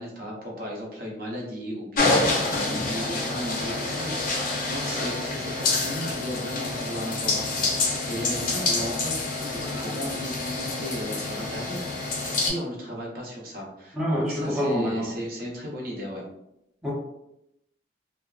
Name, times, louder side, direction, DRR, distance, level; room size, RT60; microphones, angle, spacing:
voice 1, 0.0-9.1 9.5-16.2, equal, 50° right, -1 dB, 0.6 m, -35 dB
sound 1, 2.0-12.5, left 3 dB, 45° left, 0.5 m, -27 dB
voice 2, 13.9-15.1 16.8-16.9, equal, 5° right, -6 dB, 0.4 m, -26 dB
2.5 x 2.3 x 2.3 m, 0.82 s
head